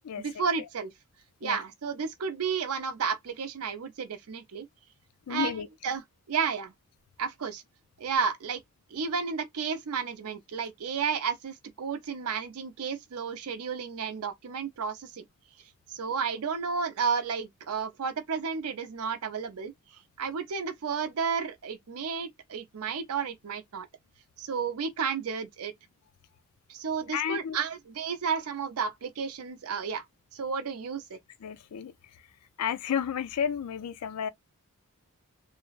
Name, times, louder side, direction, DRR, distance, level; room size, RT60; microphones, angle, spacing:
voice 1, 0.2-0.9 1.4-4.7 5.3-5.5 5.8-6.0 6.3-6.7 7.2-7.6 8.0-8.6 8.9-15.2 15.9-19.7 20.2-23.9 24.4-25.7 26.7-30.1 30.3-31.2, right 6 dB, 70° right, 0.5 m, -32 dB
voice 2, 5.3-5.7 27.1-27.6 31.4-31.9 32.6-34.3, left 8 dB, 80° left, 0.4 m, -31 dB
3.1 x 2.0 x 2.4 m
head